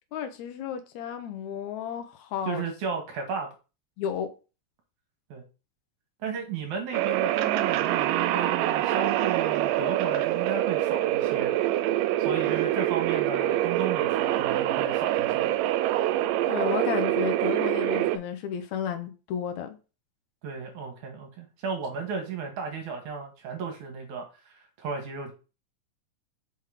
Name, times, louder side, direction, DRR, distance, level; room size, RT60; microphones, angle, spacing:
voice 1, 0.1-2.7 4.0-4.3 16.5-19.8, left 8 dB, 70° left, 1.9 m, -32 dB
voice 2, 2.4-3.5 5.3-5.4 6.2-11.5 12.2-15.5 20.4-25.3, right 5 dB, 70° right, 2.4 m, -34 dB
sound 1, 6.9-18.2, right 14 dB, 85° right, 2.2 m, -25 dB
5.8 x 3.6 x 4.8 m
omnidirectional pair, 3.8 m